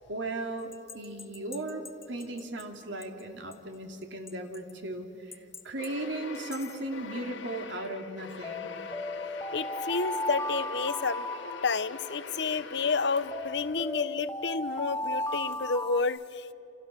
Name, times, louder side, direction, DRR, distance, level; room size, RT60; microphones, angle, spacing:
voice 1, 0.1-8.7, right 2 dB, 85° right, 4 dB, 2.8 m, -37 dB
sound 1, 0.7-2.6 3.0-3.1 3.5-3.6 4.3-4.7 5.3-5.9 6.3-6.7 8.4-12.2 13.3-16.0, left 2 dB, 15° left, 0.9 m, -36 dB
sound 2, 5.8-14.1, left 4 dB, 90° left, 1.6 m, -43 dB
voice 2, 9.5-11.3 11.6-16.5, left 4 dB, 65° left, 15 dB, 0.8 m, -30 dB
28.5 x 28.0 x 6.8 m, 2.8 s
head